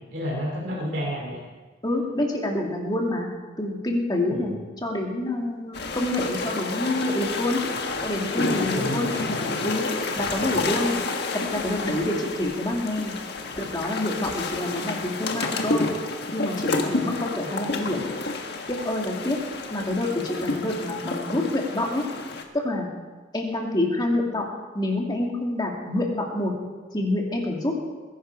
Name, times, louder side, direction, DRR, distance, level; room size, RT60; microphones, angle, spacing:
voice 1, 0.1-1.4 4.3-4.6 8.7-9.1 10.2-10.6, equal, 65° right, -4 dB, 2.8 m, -31 dB
voice 2, 1.8-3.3 3.6-7.6 8.0-9.1 9.6-9.8 10.2-11.0 11.5-13.1 13.6-15.9 16.3-18.0 18.7-19.4 19.7-22.0 22.5-22.9 23.3-24.4 24.7-26.5 26.9-27.7, left 1 dB, 25° left, 0 dB, 2.6 m, -27 dB
sound 1, 5.7-22.4, left 3 dB, 60° left, 1.5 m, -30 dB
20.5 x 11.0 x 4.8 m, 1.3 s
head